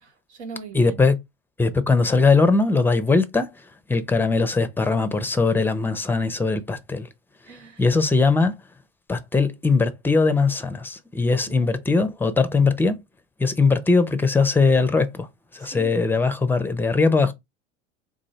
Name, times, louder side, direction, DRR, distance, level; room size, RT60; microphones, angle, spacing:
voice 1, 0.0-1.1 7.5-7.8 11.4-11.8 15.6-15.9, right 5 dB, 75° right, 1.2 m, -41 dB
voice 2, 0.7-1.1 1.6-3.5 3.9-7.1 7.8-8.6 9.1-13.0 13.4-15.3 15.5-17.3, left 4 dB, 5° left, 0.5 m, -20 dB
3.7 x 2.6 x 3.1 m
hypercardioid pair, 80°, 34 cm